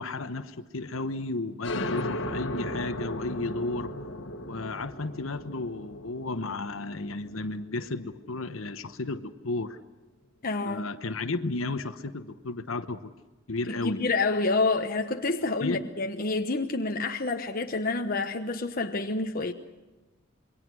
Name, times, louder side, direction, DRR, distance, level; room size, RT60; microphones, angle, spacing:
voice 1, 0.0-4.0 4.5-9.8 10.6-13.1 13.5-14.0 15.6-15.8, left 2 dB, 80° left, 1.1 m, -33 dB
sound 1, 1.6-8.9, left 1 dB, 60° left, 1.8 m, -36 dB
voice 2, 10.4-10.9 13.8-19.5, left 3 dB, 45° left, 1.1 m, -28 dB
27.0 x 22.5 x 6.3 m
head